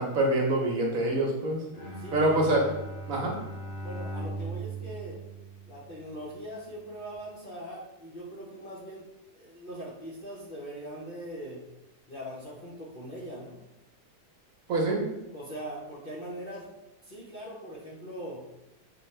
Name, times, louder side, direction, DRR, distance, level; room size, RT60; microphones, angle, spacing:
voice 1, 0.0-1.6 2.1-2.6 3.1-3.4 14.7-15.0, right 1 dB, 65° right, -1 dB, 1.2 m, -25 dB
Bowed string instrument, 1.7-6.1, right 2 dB, 90° left, 1.4 m, -39 dB
voice 2, 2.0-2.4 3.8-5.2 5.7-9.1 9.3-11.6 12.1-13.6 15.3-16.7 17.0-18.5, right 1 dB, 45° left, -6 dB, 0.7 m, -41 dB
5.6 x 2.7 x 3.2 m, 0.92 s
omnidirectional pair, 1.7 m